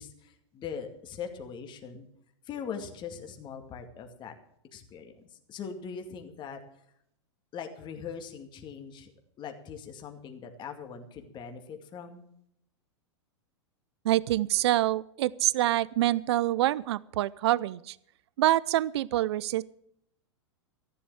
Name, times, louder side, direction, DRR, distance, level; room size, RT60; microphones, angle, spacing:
voice 1, 0.0-2.1 2.4-4.3 4.7-6.6 7.5-9.1 9.4-12.3, left 6 dB, 30° left, 5 dB, 2.3 m, -41 dB
voice 2, 14.0-18.0 18.4-19.6, right 15 dB, 65° right, 21 dB, 0.5 m, -26 dB
14.0 x 11.5 x 6.3 m, 0.73 s
hypercardioid pair, 110°, 15 cm